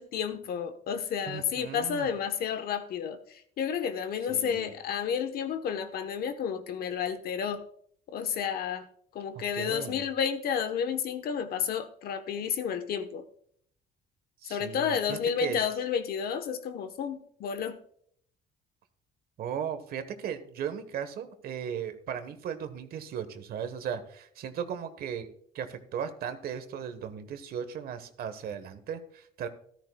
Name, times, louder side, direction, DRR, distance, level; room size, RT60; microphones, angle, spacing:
voice 1, 0.0-3.2 3.6-7.6 8.1-8.9 9.1-13.2 14.5-17.8, left 7 dB, 65° left, 9 dB, 1.2 m, -31 dB
voice 2, 1.3-2.1 4.3-4.7 9.3-10.0 14.4-15.6 19.4-25.3 25.5-29.5, right 8 dB, 65° right, 10 dB, 1.3 m, -37 dB
14.0 x 13.0 x 2.3 m, 0.64 s
cardioid pair, 110°, 17 cm